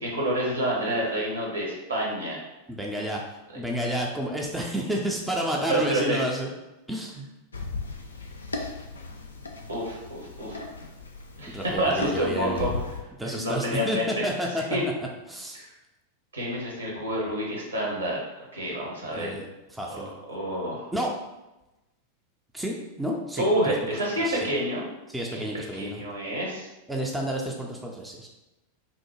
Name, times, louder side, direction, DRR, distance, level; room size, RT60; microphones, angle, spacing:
voice 1, 0.0-2.4 3.5-3.6 5.5-6.2 9.7-10.6 11.4-12.8 13.3-14.3 14.7-14.8 15.5-15.7 16.3-19.4 19.9-20.9 23.4-24.8 25.3-26.7, right 1 dB, 75° right, -3 dB, 0.8 m, -28 dB
voice 2, 2.7-3.2 3.5-6.5 6.9-7.3 11.5-12.7 13.2-14.6 15.3-15.6 19.1-19.5 19.7-20.1 20.9-21.1 22.5-23.7 24.2-24.4 25.1-26.0 26.9-28.3, equal, 5° right, -1 dB, 0.4 m, -30 dB
sound 1, 7.5-13.0, left 3 dB, 75° left, 0.3 m, -37 dB
2.7 x 2.1 x 3.0 m, 1.0 s
figure-of-eight pair, 90°, 0 cm